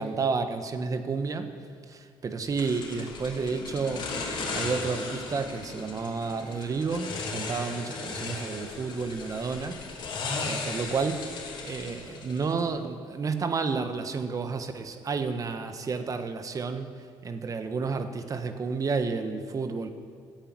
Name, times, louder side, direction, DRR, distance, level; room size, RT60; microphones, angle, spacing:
voice 1, 0.0-1.5 1.9-9.8 10.4-11.3 11.6-16.9 17.2-19.9, right 4 dB, 40° right, 9 dB, 1.3 m, -31 dB
sound 1, 2.6-12.7, left 4 dB, 55° left, 3.2 m, -36 dB
15.0 x 8.9 x 8.8 m, 2.2 s
cardioid pair, 90°, 9 cm